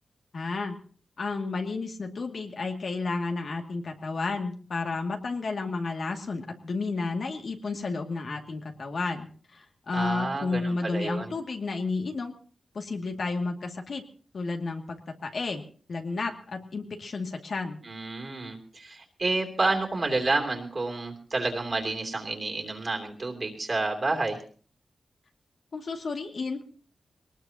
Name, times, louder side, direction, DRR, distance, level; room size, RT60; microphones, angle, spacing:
voice 1, 0.3-0.8 1.2-9.3 9.5-12.3 12.7-14.0 14.3-15.6 15.9-17.8 25.7-26.6, left 3 dB, 55° left, 3 dB, 2.3 m, -32 dB
voice 2, 9.9-11.3 17.8-24.4, right 3 dB, 35° right, 2 dB, 3.0 m, -29 dB
21.5 x 19.5 x 2.9 m, 0.42 s
wide cardioid pair, 145°, 0 cm